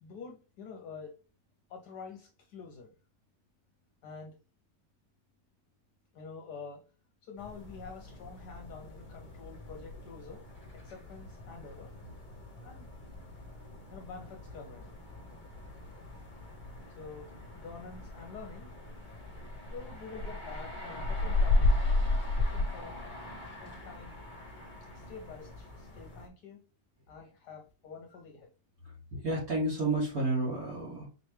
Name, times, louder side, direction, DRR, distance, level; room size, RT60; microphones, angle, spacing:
voice 1, 0.0-1.2 1.7-2.9 4.0-4.4 6.1-6.9 7.2-10.5 10.8-11.9 12.6-12.9 13.9-14.9 17.0-18.7 19.7-21.8 22.4-23.0 23.6-24.2 24.9-26.6 27.1-28.5, left 5 dB, 70° left, 1.1 m, -47 dB
sound 1, 7.4-26.3, left 2 dB, 35° left, 0.9 m, -35 dB
voice 2, 28.8-31.1, right 2 dB, 55° right, 1.6 m, -31 dB
4.5 x 3.1 x 3.1 m
omnidirectional pair, 2.0 m